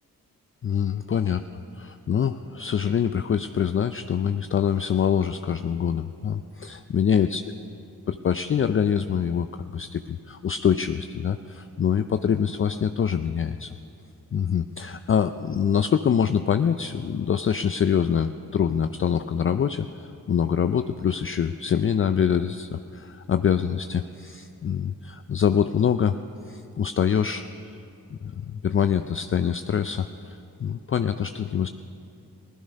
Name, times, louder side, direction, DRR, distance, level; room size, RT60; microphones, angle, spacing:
voice 1, 0.6-1.4 1.7-7.4 8.1-13.7 14.3-26.2 26.5-27.7 28.2-31.7, left 7 dB, 35° left, 10 dB, 0.4 m, -25 dB
16.0 x 13.0 x 5.3 m, 2.6 s
supercardioid pair, 40°, 39 cm